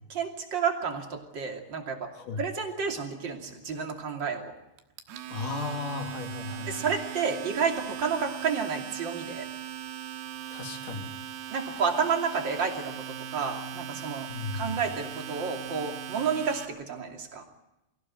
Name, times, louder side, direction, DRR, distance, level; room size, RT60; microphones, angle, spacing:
voice 1, 0.1-2.1 2.4-4.5 6.7-9.5 11.5-17.4, right 6 dB, 30° right, 3 dB, 2.5 m, -30 dB
Domestic sounds home sounds, 4.8-16.7, right 10 dB, 70° right, 3.2 m, -39 dB
voice 2, 5.3-6.9 10.5-11.1 14.3-14.8, left 3 dB, 50° left, 4 dB, 3.3 m, -35 dB
24.5 x 16.5 x 8.8 m, 0.95 s
omnidirectional pair, 5.3 m